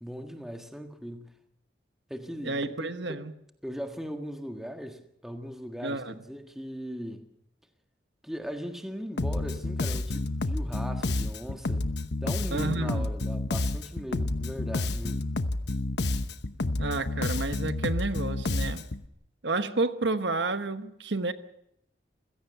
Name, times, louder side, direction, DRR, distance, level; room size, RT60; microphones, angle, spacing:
voice 1, 0.0-1.4 2.1-3.2 3.6-7.3 8.2-11.9 12.2-15.2, equal, ahead, 5 dB, 1.7 m, -39 dB
voice 2, 2.4-3.3 5.8-6.1 12.5-13.1 16.8-18.8 19.4-21.3, right 3 dB, 80° right, 10 dB, 1.2 m, -30 dB
Bass guitar, 9.2-19.1, left 2 dB, 70° left, 1.0 m, -30 dB
27.5 x 16.5 x 6.9 m, 0.78 s
head